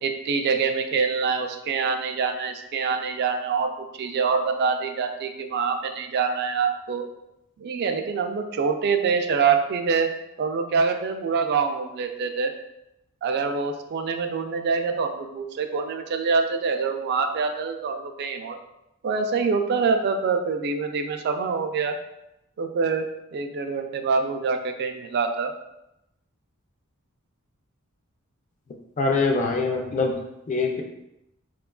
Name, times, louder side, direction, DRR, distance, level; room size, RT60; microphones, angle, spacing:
voice 1, 0.0-3.7 4.0-7.0 7.6-10.1 10.4-12.5 13.2-18.6 19.0-21.9 22.6-25.5, right 5 dB, 50° right, 5 dB, 0.3 m, -25 dB
voice 2, 29.0-30.2 30.5-30.8, left 3 dB, 35° left, 3 dB, 0.4 m, -23 dB
4.2 x 2.3 x 2.2 m, 0.88 s
head